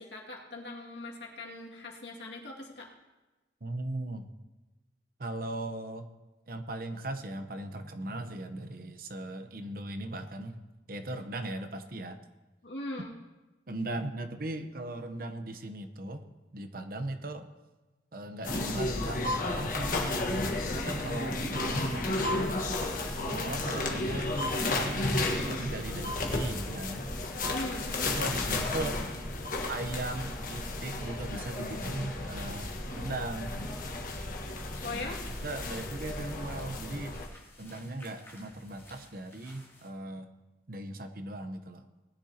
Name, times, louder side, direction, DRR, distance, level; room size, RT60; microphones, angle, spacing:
voice 1, 0.0-2.9 12.6-13.1 27.4-28.2 34.8-35.2, left 2 dB, 80° left, -1 dB, 2.3 m, -40 dB
voice 2, 3.6-4.3 5.2-6.1 6.5-10.6 10.9-12.2 13.7-16.2 16.5-17.5 18.1-20.4 20.7-22.6 23.2-27.1 28.1-29.2 29.7-33.7 34.9-35.2 35.4-37.2 37.6-40.3 40.7-41.9, right 1 dB, 55° right, 8 dB, 0.9 m, -38 dB
sound 1, 18.4-37.3, left 2 dB, 50° left, 1.5 m, -33 dB
sound 2, 34.5-39.9, left 2 dB, 15° left, 2.8 m, -55 dB
19.5 x 10.5 x 2.9 m, 1.1 s
head